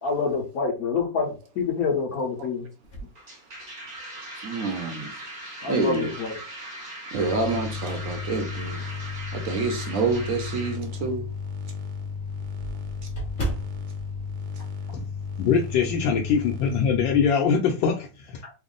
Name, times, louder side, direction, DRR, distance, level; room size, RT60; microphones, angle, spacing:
voice 1, 0.0-2.7 5.6-6.4 18.4-18.5, left 5 dB, 60° left, 1.2 m, -27 dB
sound 1, 2.8-4.2 4.7-4.8 6.3-6.8 7.3-9.9 10.3-10.5 10.8-10.9 11.2-11.3 11.6-15.4 15.6-15.8 16.2-16.8, right 2 dB, 35° left, 0.9 m, -38 dB
sound 2, 3.2-10.8, right 1 dB, 40° right, 0.6 m, -40 dB
voice 2, 4.4-5.1 5.6-6.1 7.1-8.8 9.3-11.3, right 3 dB, 65° right, 0.9 m, -27 dB
sound 3, 7.1-17.3, left 5 dB, 80° right, 1.3 m, -34 dB
voice 3, 15.4-18.4, left 6 dB, 90° left, 1.3 m, -23 dB
3.5 x 2.0 x 3.7 m
omnidirectional pair, 2.0 m